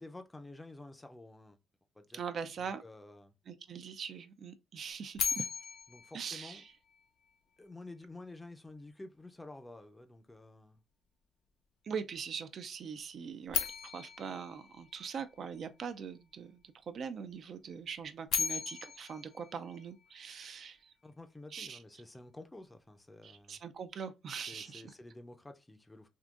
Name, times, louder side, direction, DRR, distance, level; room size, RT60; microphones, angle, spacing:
voice 1, 0.0-1.6 2.0-2.2 2.6-3.3 5.9-6.6 7.6-10.8 21.0-23.6 24.5-26.1, left 2 dB, 15° left, 0.5 m, -50 dB
voice 2, 2.1-2.8 3.5-5.5 6.1-6.6 11.8-20.9 21.5-21.8 23.2-24.8, right 6 dB, 55° right, 0.4 m, -42 dB
sound 1, 5.1-7.3 13.5-15.7 18.0-20.4, left 7 dB, 80° left, 0.4 m, -38 dB
3.6 x 2.5 x 2.4 m
cardioid pair, 90°, 0 cm